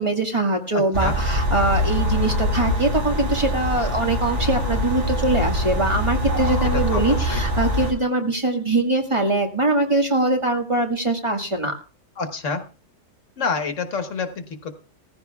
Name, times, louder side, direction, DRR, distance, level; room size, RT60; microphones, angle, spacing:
voice 1, 0.0-11.7, right 2 dB, 25° right, 2 dB, 1.8 m, -22 dB
voice 2, 0.7-1.1 6.7-7.4 12.2-12.6 13.4-14.7, left 4 dB, 75° left, 7 dB, 1.6 m, -28 dB
sound 1, 0.9-7.9, equal, 65° right, 4.2 m, -23 dB
18.5 x 15.0 x 2.3 m, 0.35 s
omnidirectional pair, 1.3 m